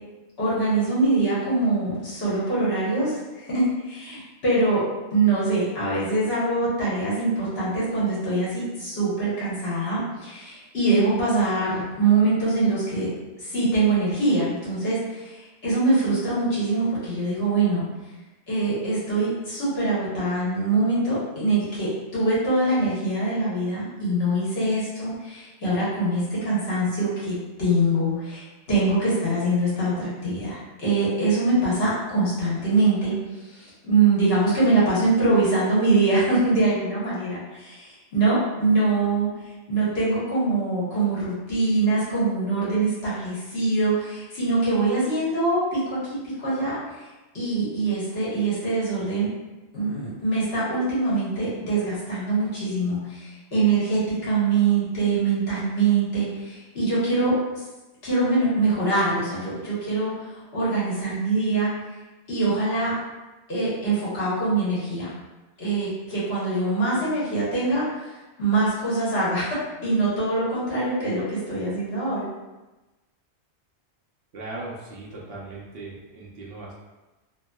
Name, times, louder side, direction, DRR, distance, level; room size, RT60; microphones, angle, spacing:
voice 1, 0.4-4.8 5.1-13.1 13.4-17.8 18.5-33.1 33.4-39.3 39.7-47.1 47.3-49.3 49.7-57.3 58.0-61.7 62.3-62.9 63.5-65.1 65.6-72.3, right 2 dB, 60° left, -9 dB, 1.3 m, -23 dB
voice 2, 74.3-76.7, right 2 dB, 65° right, -5 dB, 0.8 m, -38 dB
2.9 x 2.6 x 2.2 m, 1.1 s
omnidirectional pair, 1.2 m